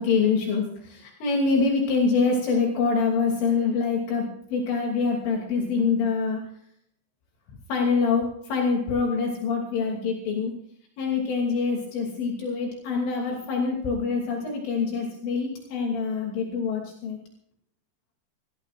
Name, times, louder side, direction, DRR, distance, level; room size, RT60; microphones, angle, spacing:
voice 1, 0.0-6.5 7.7-10.6 11.0-17.2, left 4 dB, 70° left, 0 dB, 5.3 m, -25 dB
26.5 x 18.5 x 2.5 m, 0.66 s
omnidirectional pair, 5.8 m